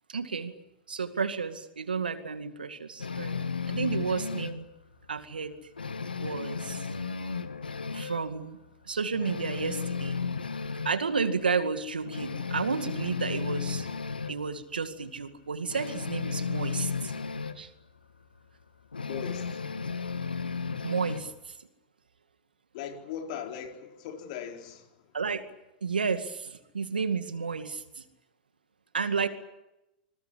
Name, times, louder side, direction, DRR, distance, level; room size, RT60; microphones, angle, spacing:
voice 1, 0.1-0.5 0.9-3.4 3.7-4.7 5.1-5.6 6.2-6.8 7.9-8.6 8.9-10.2 10.8-13.9 14.3-17.1 17.6-17.7 20.8-21.5 25.1-25.4 25.8-28.0 28.9-29.3, right 5 dB, 85° right, 2.2 m, -31 dB
sound 1, 3.0-4.6 5.0-5.2 5.5-8.3 8.6-8.7 9.1-11.0 11.5-11.6 12.0-14.4 15.7-17.6 18.9-21.3, left 5 dB, 90° left, 1.4 m, -34 dB
voice 2, 19.0-19.6 22.7-25.1, left 8 dB, 55° left, 4.2 m, -39 dB
26.5 x 21.0 x 8.5 m
hypercardioid pair, 100°, 5 cm